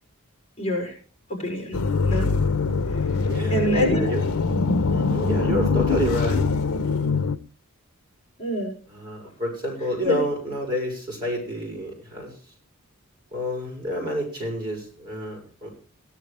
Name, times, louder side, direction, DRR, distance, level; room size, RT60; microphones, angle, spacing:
voice 1, 0.6-0.9 1.3-1.8 2.1-2.3 3.5-4.2 8.4-8.7 10.0-10.2, equal, 30° left, 2 dB, 6.0 m, -25 dB
sound 1, 1.7-7.4, left 4 dB, 85° left, 0.7 m, -23 dB
voice 2, 3.3-4.2 4.9-6.4 8.9-12.5 13.3-15.7, equal, 20° right, 1 dB, 6.2 m, -29 dB
16.5 x 11.0 x 3.3 m, 0.38 s
head